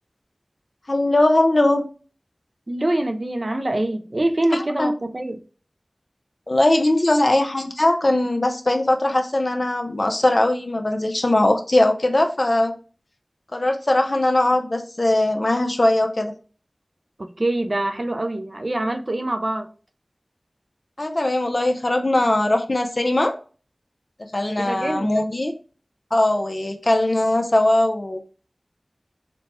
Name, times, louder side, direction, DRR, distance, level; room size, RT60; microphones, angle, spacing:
voice 1, 0.9-1.9 4.5-4.9 6.5-12.8 13.5-16.3 21.0-23.3 24.3-25.5 26.1-28.2, left 1 dB, 60° left, 0.7 m, -20 dB
voice 2, 2.7-5.4 17.2-19.7 24.6-25.3, right 1 dB, 55° right, 0.5 m, -25 dB
4.0 x 2.3 x 4.2 m
wide cardioid pair, 45°, 0 cm